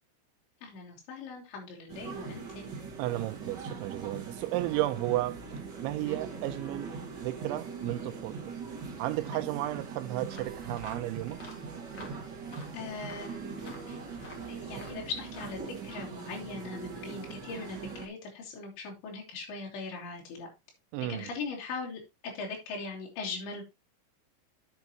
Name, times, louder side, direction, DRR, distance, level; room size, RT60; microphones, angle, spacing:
voice 1, 0.6-2.7 6.1-6.2 9.3-9.4 12.7-14.0 14.5-20.5 21.1-22.0 22.4-23.6, left 4 dB, 70° left, 5.2 m, -40 dB
sound 1, 1.9-18.1, right 5 dB, 65° right, 1.0 m, -41 dB
voice 2, 3.0-5.5 5.8-8.5 9.0-11.4 14.7-14.9 20.9-21.3, right 16 dB, 85° right, 3.0 m, -33 dB
sound 2, 10.3-15.8, left 2 dB, 40° left, 1.5 m, -51 dB
10.5 x 7.3 x 2.9 m
omnidirectional pair, 5.3 m